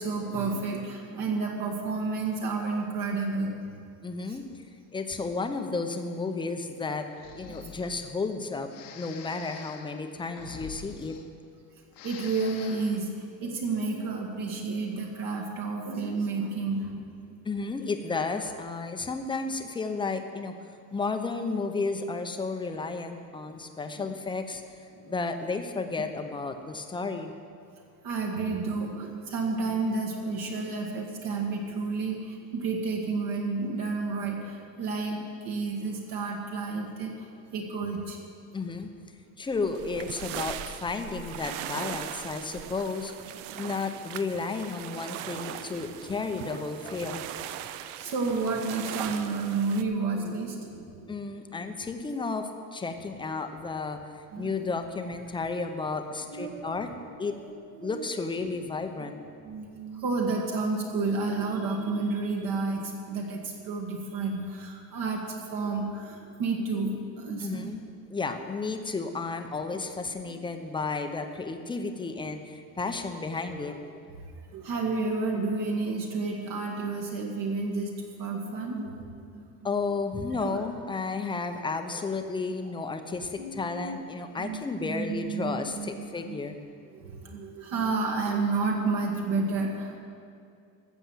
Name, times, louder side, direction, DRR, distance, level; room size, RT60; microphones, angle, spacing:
voice 1, 0.0-3.5 4.3-4.4 7.5-7.7 12.0-17.1 23.4-23.5 23.9-24.1 24.9-25.1 28.0-38.2 48.0-51.2 54.3-54.5 56.1-56.8 57.3-58.0 58.4-58.5 59.0-59.1 59.4-67.7 69.7-69.8 70.2-70.4 72.3-72.4 74.5-79.4 80.3-80.6 83.4-84.0 84.4-86.5 86.9-90.0, right 3 dB, 50° right, 0 dB, 1.7 m, -31 dB
voice 2, 4.0-4.5 4.9-7.1 7.3-11.2 17.4-20.5 20.9-24.6 25.1-27.3 38.5-38.9 39.4-43.1 43.5-47.4 51.1-54.0 54.4-56.9 57.2-57.3 57.8-59.2 67.4-67.8 68.1-74.0 79.6-86.6, left 4 dB, 10° left, 6 dB, 0.7 m, -32 dB
Breathing, 7.1-8.1 8.7-11.6 11.9-13.0, left 8 dB, 50° left, 1.0 m, -46 dB
sound 1, 39.5-49.8, right 11 dB, 85° right, 0.7 m, -39 dB
14.0 x 7.1 x 7.8 m, 2.4 s
cardioid pair, 155°, 42 cm